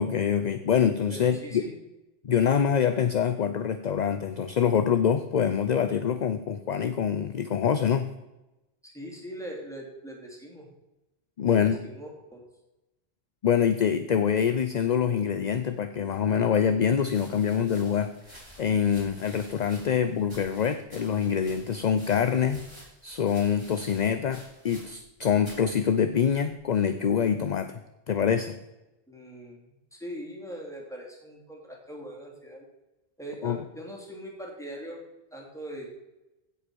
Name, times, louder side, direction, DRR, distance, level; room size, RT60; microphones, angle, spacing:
voice 1, 0.0-1.6 2.2-8.1 11.4-11.8 13.4-22.6 23.0-27.8 28.1-28.6 33.4-33.6, left 7 dB, 50° left, 10 dB, 0.7 m, -25 dB
voice 2, 1.1-1.8 8.8-10.7 11.4-12.4 29.1-32.6 33.2-35.0 35.3-35.9, equal, 5° left, -1 dB, 3.0 m, -41 dB
sound 1, 17.1-25.1 25.4-25.7 26.5-26.9, equal, 25° right, 3.9 m, -51 dB
16.0 x 5.6 x 6.2 m, 0.99 s
omnidirectional pair, 1.0 m